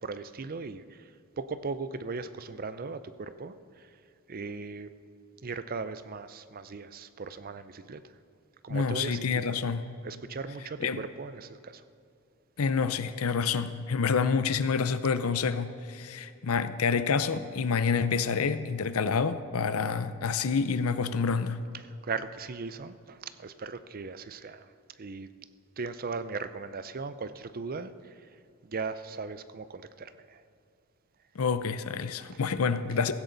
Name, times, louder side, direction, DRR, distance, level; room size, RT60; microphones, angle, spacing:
voice 1, 0.0-4.0 4.3-5.0 5.4-8.0 8.6-9.6 10.0-11.8 21.7-25.3 25.8-30.4 32.2-32.4, right 4 dB, 40° right, 13 dB, 0.6 m, -38 dB
voice 2, 8.7-9.8 10.8-11.0 12.6-21.6 31.4-33.1, left 5 dB, 75° left, 12 dB, 0.6 m, -28 dB
16.0 x 15.5 x 4.0 m, 2.5 s
head